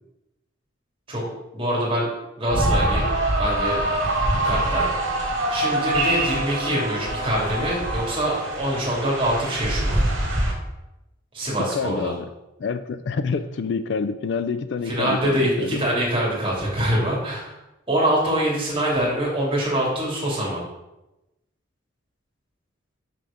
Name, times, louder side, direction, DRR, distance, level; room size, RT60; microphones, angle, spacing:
voice 1, 1.5-2.1 2.4-3.1 3.4-3.8 4.4-10.0 11.3-12.1 14.9-17.6 17.9-20.7, right 1 dB, 25° right, -5 dB, 2.6 m, -24 dB
sound 1, 2.5-10.5, right 1 dB, 70° right, 1.6 m, -24 dB
voice 2, 11.6-12.2 12.6-15.8, left 5 dB, 60° left, 11 dB, 0.4 m, -27 dB
5.8 x 4.9 x 5.1 m, 0.95 s
head